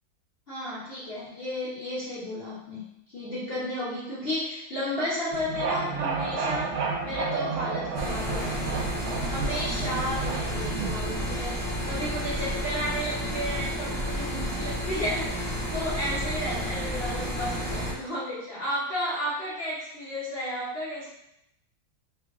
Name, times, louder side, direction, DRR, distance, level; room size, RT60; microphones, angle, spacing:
voice 1, 0.5-6.7 7.0-8.9 9.3-21.1, left 1 dB, 85° left, -8 dB, 0.5 m, -33 dB
sound 1, 5.3-11.4, right 5 dB, 80° right, 1.3 m, -31 dB
sound 2, 7.9-17.9, equal, 40° right, 0.4 m, -31 dB
3.3 x 2.3 x 3.5 m, 0.81 s
omnidirectional pair, 2.2 m